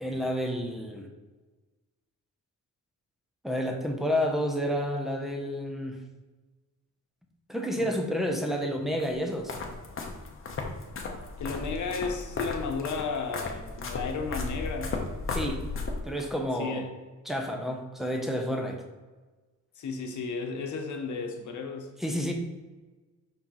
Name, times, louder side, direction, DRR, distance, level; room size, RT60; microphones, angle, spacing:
voice 1, 0.0-1.1 3.4-6.0 7.5-9.5 15.3-15.6 16.0-16.9 17.3-18.8 22.0-22.3, equal, ahead, 2 dB, 0.7 m, -30 dB
sound 1, 9.0-16.3, left 3 dB, 40° left, 0.9 m, -35 dB
voice 2, 11.4-15.1 16.6-16.9 19.8-22.0, left 4 dB, 70° left, 3 dB, 1.0 m, -34 dB
5.7 x 4.5 x 3.8 m, 1.3 s
wide cardioid pair, 160°, 31 cm